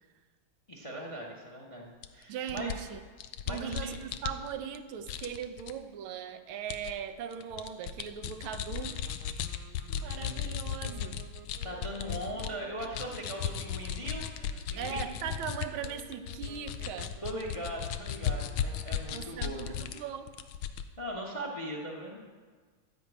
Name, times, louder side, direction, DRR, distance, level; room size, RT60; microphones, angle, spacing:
voice 1, 0.7-2.7 3.5-4.0 10.0-10.2 11.6-15.1 17.2-19.8 21.0-22.2, right 1 dB, 25° left, -1 dB, 0.8 m, -40 dB
sound 1, 2.0-2.1 2.5-4.8 5.1-5.7 6.7-6.9 7.3-12.5 12.8-20.0 20.3-20.8, left 9 dB, 90° left, 1.5 m, -36 dB
voice 2, 2.3-3.0 3.5-9.0 9.9-11.2 14.8-17.1 19.1-20.3, right 8 dB, 85° right, 9 dB, 1.6 m, -39 dB
sound 2, 8.7-19.6, right 5 dB, 60° right, 0.7 m, -55 dB
12.5 x 5.3 x 8.1 m, 1.5 s
omnidirectional pair, 2.2 m